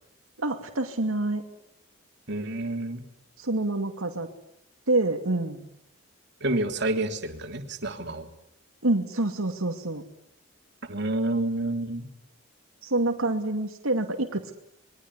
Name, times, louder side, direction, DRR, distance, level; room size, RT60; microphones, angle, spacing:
voice 1, 0.4-1.4 3.4-4.3 4.9-5.7 8.8-10.1 12.8-14.5, right 2 dB, 85° right, 4 dB, 2.5 m, -27 dB
voice 2, 2.3-3.0 6.4-8.3 10.9-12.1, right 2 dB, 55° right, 5 dB, 3.0 m, -29 dB
27.0 x 22.5 x 9.8 m, 0.83 s
head